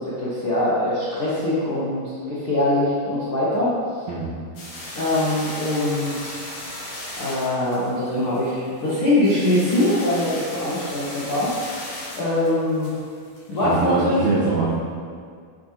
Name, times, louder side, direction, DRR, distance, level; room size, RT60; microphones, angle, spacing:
voice 1, 0.0-3.7 4.9-6.4 7.2-11.5 12.1-12.9 13.5-14.2, left 1 dB, 80° left, -10 dB, 1.2 m, -22 dB
sound 1, 4.5-14.0, left 1 dB, 45° left, 2.8 m, -36 dB
voice 2, 13.6-14.7, right 3 dB, 85° right, -8 dB, 1.6 m, -23 dB
11.0 x 8.2 x 3.0 m, 2.1 s
omnidirectional pair, 5.5 m